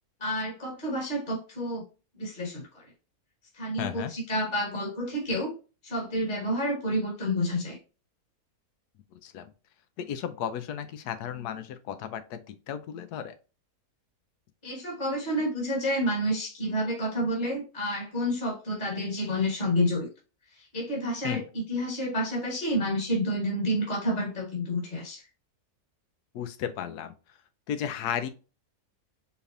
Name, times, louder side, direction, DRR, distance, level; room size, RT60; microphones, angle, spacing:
voice 1, 0.2-1.8 2.2-2.8 3.5-5.5 5.8-7.8 14.6-20.1 20.5-25.2, equal, 35° left, -1 dB, 1.4 m, -29 dB
voice 2, 3.8-4.1 9.1-9.5 10.0-13.4 21.2-21.4 26.3-27.1 27.7-28.3, left 9 dB, 90° left, 10 dB, 1.1 m, -34 dB
4.7 x 3.4 x 2.5 m, 0.33 s
omnidirectional pair, 1.6 m